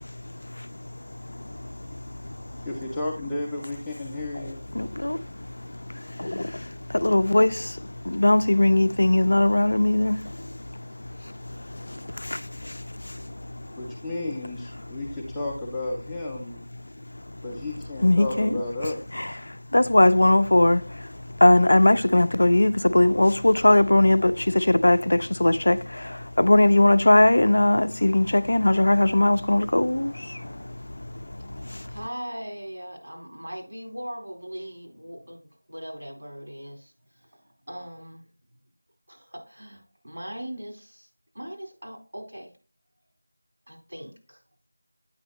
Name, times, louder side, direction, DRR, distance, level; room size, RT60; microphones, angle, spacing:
voice 1, 0.0-2.7 4.3-4.4 4.7-14.0 14.8-15.0 17.1-17.4 18.0-18.6 19.1-32.0, left 1 dB, 60° left, 0.4 m, -22 dB
voice 2, 2.6-4.6 13.8-16.6 17.4-19.0, left 2 dB, 5° left, 0.5 m, -32 dB
voice 3, 31.9-38.3 39.1-41.1 41.3-42.5 43.7-44.4, equal, 75° right, 3.8 m, -39 dB
8.6 x 5.4 x 2.9 m
figure-of-eight pair, 175°, 0 cm